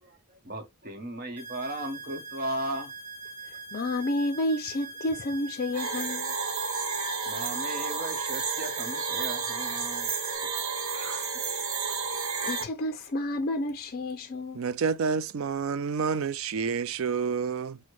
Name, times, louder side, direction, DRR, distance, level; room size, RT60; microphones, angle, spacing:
voice 1, 0.0-2.9 7.3-10.1 10.8-11.3, right 1 dB, 45° right, 0.9 m, -36 dB
sound 1, 1.4-10.4, right 3 dB, 5° right, 1.1 m, -42 dB
voice 2, 3.5-6.3 11.1-11.2 12.1-14.6, left 1 dB, 45° left, 0.4 m, -31 dB
sound 2, 5.7-12.6, right 5 dB, 85° right, 0.8 m, -31 dB
voice 3, 14.5-17.8, right 5 dB, 65° right, 0.4 m, -29 dB
6.1 x 2.1 x 3.0 m
head